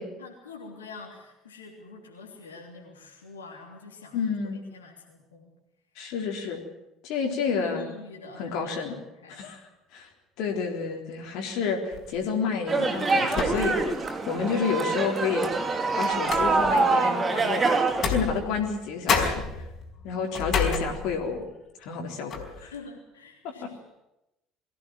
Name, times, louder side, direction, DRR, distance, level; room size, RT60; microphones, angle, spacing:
voice 1, 0.0-5.5 7.3-9.0 9.2-9.4 22.6-23.8, left 4 dB, 80° left, 0 dB, 3.3 m, -46 dB
voice 2, 4.1-4.6 6.0-6.6 7.0-7.9 8.4-9.0 9.3-9.6 9.9-10.1 10.4-14.0 14.3-17.7 18.0-19.4 20.0-21.4 21.8-22.5 23.6-23.7, left 5 dB, 60° left, 3 dB, 3.8 m, -30 dB
sound 1, 11.9-12.2 13.3-14.0 14.4-14.5 15.4-16.9 17.9-18.8 19.1-21.4 21.8-22.0 22.3-22.6, left 5 dB, 45° left, 5.1 m, -30 dB
sound 2, 12.7-18.1, right 3 dB, 30° right, 3.0 m, -25 dB
22.0 x 16.0 x 9.0 m, 0.92 s
figure-of-eight pair, 60°, 0 cm